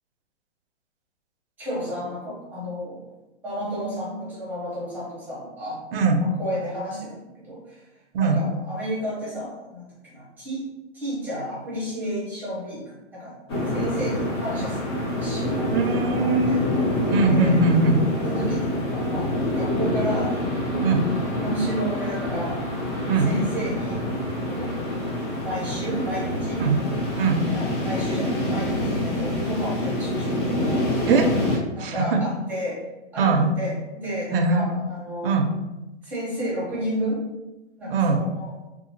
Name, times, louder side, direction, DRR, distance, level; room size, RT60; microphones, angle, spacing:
voice 1, 1.6-3.0 3.4-5.8 6.2-7.8 8.2-10.6 10.9-13.4 13.6-16.7 17.3-17.7 18.2-20.9 21.4-24.8 25.4-26.7 27.5-30.6 31.8-32.8 33.1-35.4 36.0-37.3 37.8-38.5, equal, 5° right, -9 dB, 0.7 m, -32 dB
voice 2, 5.9-6.2 8.1-8.4 15.7-16.6 17.1-18.0 20.8-21.0 23.1-23.3 26.6-26.8 27.1-27.4 31.1-32.2 33.2-33.5 34.3-34.7 35.2-35.5 37.9-38.2, right 3 dB, 50° right, 4 dB, 0.5 m, -21 dB
sound 1, 13.5-31.6, left 1 dB, 25° left, 0.4 m, -26 dB
2.8 x 2.4 x 2.7 m, 1.0 s
hypercardioid pair, 150°, 36 cm